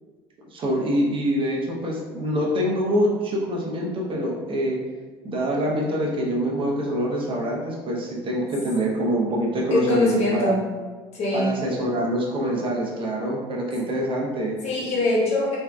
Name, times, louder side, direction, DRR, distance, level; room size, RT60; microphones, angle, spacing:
voice 1, 0.5-4.8 5.2-10.5 11.3-14.6, equal, 40° right, -1 dB, 0.8 m, -25 dB
voice 2, 9.7-10.6 11.1-11.5 14.6-15.6, left 2 dB, 55° left, -4 dB, 1.1 m, -22 dB
3.5 x 2.6 x 2.2 m, 1.4 s
supercardioid pair, 85°, 13 cm